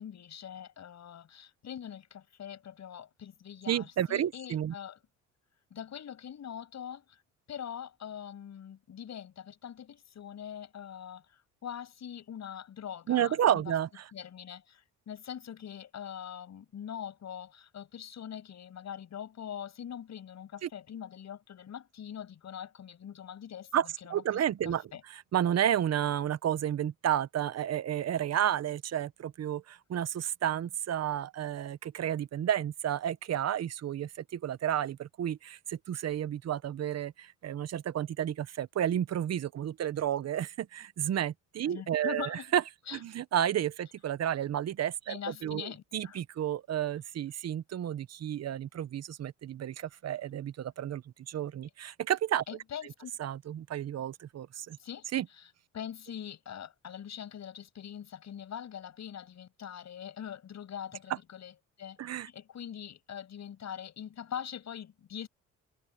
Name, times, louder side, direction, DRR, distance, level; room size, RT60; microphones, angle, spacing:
voice 1, 0.0-5.0 5.7-7.2 7.5-13.6 14.1-23.7 24.0-24.2 24.6-25.0 41.7-42.5 42.9-43.0 45.1-46.2 52.5-53.1 54.8-65.3, left 9 dB, 60° left, 6.7 m, -43 dB
voice 2, 3.7-4.7 13.1-14.1 20.6-20.7 23.7-42.6 42.9-52.4 53.2-54.8 55.1-55.3 62.0-62.3, right 10 dB, 55° right, 1.0 m, -31 dB
cardioid pair, 85°, 31 cm